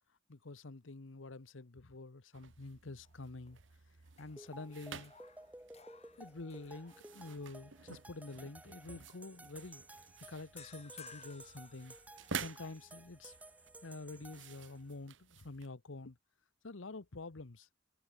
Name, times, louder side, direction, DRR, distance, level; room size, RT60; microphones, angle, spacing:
voice 1, 0.3-3.6 4.2-5.1 6.2-11.9 12.3-13.4 13.8-16.2 16.6-17.7, left 3 dB, 90° left, 1.1 m, -48 dB
sound 1, 2.3-15.7, right 6 dB, 75° right, 1.1 m, -51 dB
sound 2, 3.0-3.7 4.1-7.4 7.8-8.1 10.6-12.5, left 7 dB, 35° left, 7.8 m, -59 dB
sound 3, 4.4-15.0, right 2 dB, 10° right, 1.1 m, -55 dB
head